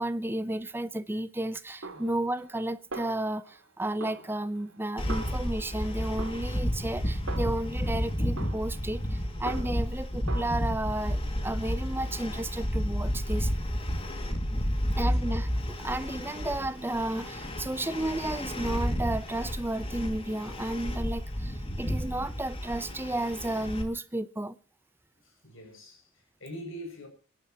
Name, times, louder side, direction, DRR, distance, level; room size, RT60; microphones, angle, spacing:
voice 1, 0.0-13.5 14.9-15.5 15.8-24.6, right 1 dB, 10° right, 0.7 m, -33 dB
Snare drum, 1.8-2.6 2.9-3.7 4.0-5.8 6.2-7.9 8.4-10.0 10.3-10.5, right 3 dB, 75° right, 3.2 m, -43 dB
voice 2, 1.9-2.3 9.5-9.7 14.0-15.5 25.2-27.1, equal, 65° left, 6.4 m, -46 dB
sound 1, 5.0-23.8, equal, 25° left, 2.2 m, -31 dB
28.0 x 11.0 x 2.9 m
head